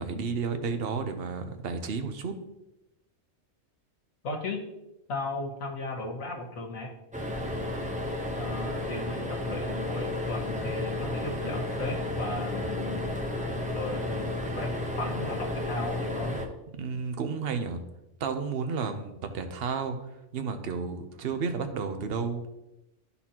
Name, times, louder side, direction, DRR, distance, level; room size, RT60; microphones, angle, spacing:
voice 1, 0.0-2.4 16.7-17.8 18.2-20.0 20.3-22.4, right 5 dB, 55° right, 7 dB, 0.9 m, -32 dB
voice 2, 4.2-4.6 5.1-6.9 8.3-16.4, left 2 dB, 85° left, 0 dB, 1.7 m, -36 dB
sound 1, 7.1-16.4, left 1 dB, 10° right, 0.5 m, -32 dB
12.0 x 4.2 x 2.9 m, 0.91 s
omnidirectional pair, 1.4 m